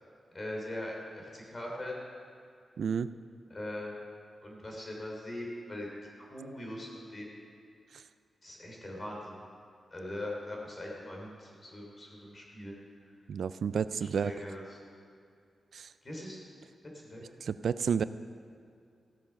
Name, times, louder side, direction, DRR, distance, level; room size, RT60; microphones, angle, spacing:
voice 1, 0.3-2.0 3.5-3.9 4.4-5.9 6.2-7.3 8.4-9.4 9.9-12.7 14.0-14.6 16.0-16.4 17.1-17.2, left 1 dB, 30° left, -2 dB, 3.2 m, -41 dB
voice 2, 2.8-3.1 13.3-14.3 15.7-15.9 17.4-18.0, right 6 dB, 75° right, 14 dB, 0.3 m, -30 dB
15.0 x 7.2 x 5.7 m, 2.4 s
wide cardioid pair, 100°, 0 cm